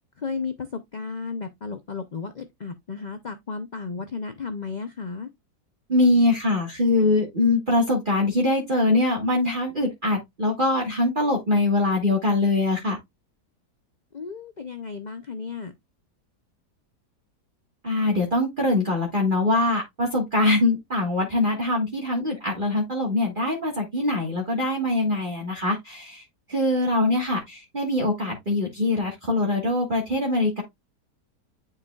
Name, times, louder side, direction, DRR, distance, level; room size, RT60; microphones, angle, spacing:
voice 1, 0.2-5.3 14.1-15.7, left 5 dB, 80° left, 0.4 m, -34 dB
voice 2, 5.9-13.0 17.8-26.2 26.5-30.6, left 2 dB, 30° right, 1.6 m, -23 dB
9.8 x 4.8 x 2.3 m
omnidirectional pair, 1.8 m